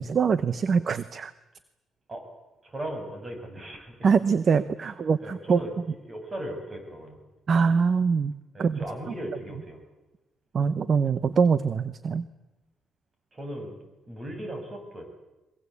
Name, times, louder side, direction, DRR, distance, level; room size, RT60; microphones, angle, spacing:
voice 1, 0.0-1.3 4.0-5.6 7.5-8.3 8.6-8.8 9.1-9.2 10.5-12.3, right 5 dB, 45° right, 15 dB, 0.9 m, -23 dB
voice 2, 2.6-4.1 4.8-4.9 5.2-5.7 6.1-7.2 8.5-9.8 13.3-13.8 14.1-15.1, right 1 dB, 30° right, 4 dB, 7.5 m, -37 dB
23.0 x 22.5 x 8.4 m, 1.1 s
cardioid pair, 90°, 0 cm